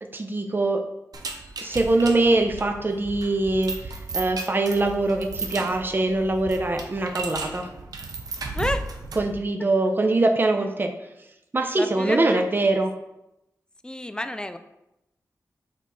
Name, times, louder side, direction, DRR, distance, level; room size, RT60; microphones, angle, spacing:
voice 1, 0.0-0.9 1.6-7.7 9.2-10.9 11.5-12.9, right 2 dB, 35° right, 5 dB, 0.7 m, -23 dB
sound 1, 1.1-9.4, right 3 dB, 80° right, 0.7 m, -35 dB
voice 2, 11.8-12.4 13.8-14.6, left 1 dB, 15° left, 10 dB, 0.4 m, -29 dB
6.0 x 4.6 x 4.0 m, 0.89 s
wide cardioid pair, 110°, 6 cm